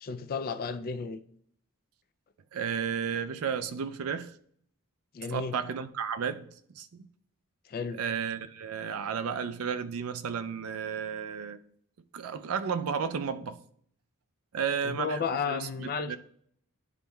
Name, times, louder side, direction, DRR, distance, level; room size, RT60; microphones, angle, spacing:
voice 1, 0.0-1.2 5.1-5.5 7.7-8.0 14.8-16.2, left 5 dB, 40° left, 0.4 m, -33 dB
voice 2, 2.5-4.3 5.3-6.5 6.7-7.1 8.0-11.6 12.1-13.6 14.5-15.2 15.5-16.2, right 7 dB, 70° right, 0.4 m, -33 dB
10.5 x 4.1 x 2.3 m
head